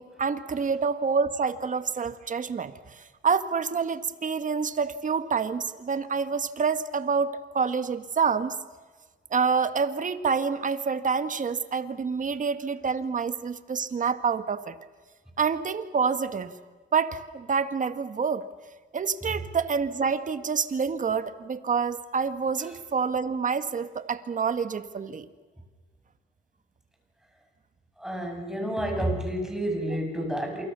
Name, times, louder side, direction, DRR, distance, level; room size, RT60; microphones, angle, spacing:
voice 1, 0.0-8.6 9.3-14.8 15.4-16.5 16.9-18.5 18.9-25.3, right 5 dB, 40° right, 10 dB, 1.8 m, -27 dB
voice 2, 28.0-30.6, right 1 dB, ahead, 2 dB, 7.9 m, -29 dB
28.0 x 25.0 x 7.0 m, 1.4 s
cardioid pair, 90°, 20 cm